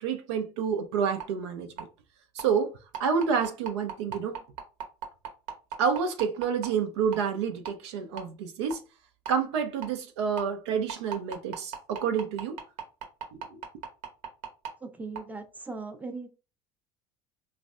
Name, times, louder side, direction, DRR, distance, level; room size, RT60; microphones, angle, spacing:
voice 1, 0.0-1.9 2.3-2.7 3.0-4.4 5.8-8.8 9.3-12.6 13.3-13.6, right 6 dB, 85° right, 0.5 m, -29 dB
sound 1, 1.2-1.3 1.8-1.9 2.4-2.5 2.9-6.7 7.1-7.2 7.7-7.8 8.2-8.3 8.7-8.8 9.3-9.4 9.8-9.9 10.4-10.5 10.9-14.7 15.2-15.3, right 9 dB, 70° right, 0.9 m, -35 dB
voice 2, 14.8-16.3, right 3 dB, 10° right, 0.5 m, -39 dB
3.2 x 2.1 x 2.4 m
hypercardioid pair, 80°, 14 cm